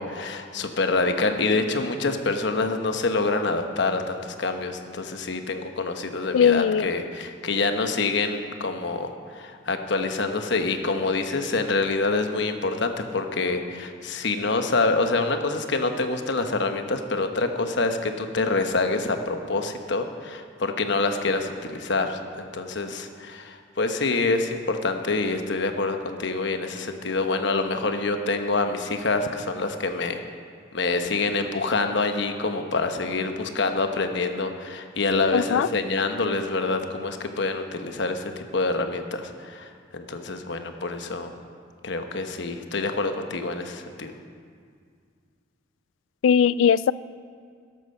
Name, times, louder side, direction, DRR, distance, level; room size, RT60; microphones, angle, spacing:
voice 1, 0.0-30.2 30.7-41.3 41.8-44.1, left 3 dB, 70° left, 6 dB, 1.1 m, -26 dB
voice 2, 6.3-6.9 35.3-35.7 46.2-46.9, left 7 dB, 90° left, 19 dB, 0.3 m, -19 dB
13.5 x 12.0 x 5.6 m, 2.1 s
head